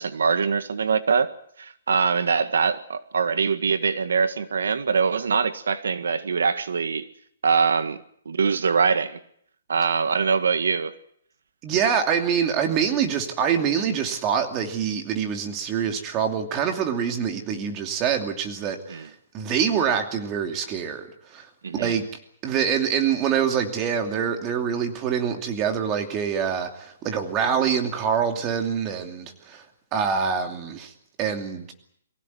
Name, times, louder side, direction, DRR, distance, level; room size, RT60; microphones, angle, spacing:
voice 1, 0.0-1.3 1.6-7.1 7.4-9.2 9.7-11.0 18.9-19.1 21.6-22.0, right 5 dB, 90° right, 1.8 m, -23 dB
voice 2, 11.6-19.1 19.3-21.5 21.7-22.1 22.4-29.6 29.9-30.9 31.2-31.7, right 7 dB, 20° right, 2.7 m, -25 dB
24.0 x 16.5 x 9.5 m
hypercardioid pair, 170°, 0 cm